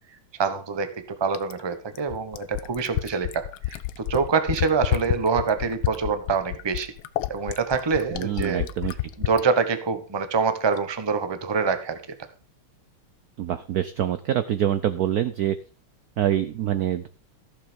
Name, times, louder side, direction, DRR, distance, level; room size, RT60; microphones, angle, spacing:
voice 1, 0.4-6.9 7.3-8.6 9.2-12.0, right 5 dB, 20° right, 9 dB, 0.7 m, -25 dB
Fill (with liquid), 1.3-9.5 10.8-10.9, left 15 dB, 75° left, 1.4 m, -29 dB
voice 2, 8.1-8.9 13.4-15.6 16.2-17.1, right 11 dB, 70° right, 12 dB, 0.9 m, -25 dB
14.5 x 6.9 x 5.2 m, 0.38 s
omnidirectional pair, 2.3 m